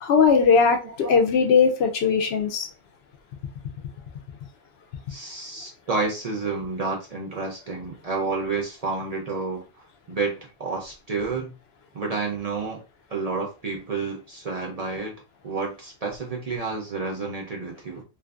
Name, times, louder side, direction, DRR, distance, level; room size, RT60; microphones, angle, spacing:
voice 1, 0.0-2.7, left 5 dB, 75° left, 5 dB, 0.8 m, -19 dB
voice 2, 0.8-1.1 5.1-9.6 10.1-11.5 11.9-12.8 13.1-15.1 15.4-18.0, right 4 dB, 45° right, 0 dB, 0.5 m, -30 dB
2.5 x 2.5 x 2.3 m, 0.31 s
omnidirectional pair, 1.1 m